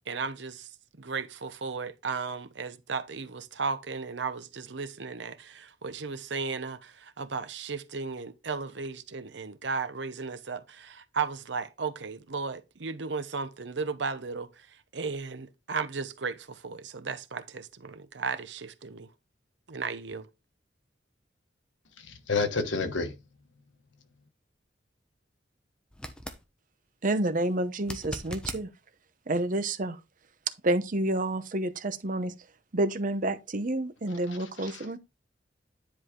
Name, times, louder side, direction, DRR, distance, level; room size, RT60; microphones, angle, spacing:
voice 1, 0.1-0.7 1.0-19.1 19.7-20.3, right 5 dB, 70° right, 0.9 m, -35 dB
voice 2, 22.0-23.2 34.6-34.9, left 4 dB, 90° left, 1.3 m, -30 dB
sound 1, 25.9-26.4 27.8-28.6 31.6-31.7, equal, 5° left, 1.0 m, -39 dB
voice 3, 27.0-28.7 29.3-30.0 30.6-32.3 32.7-35.0, right 1 dB, 45° right, 0.8 m, -29 dB
10.0 x 4.8 x 3.8 m
head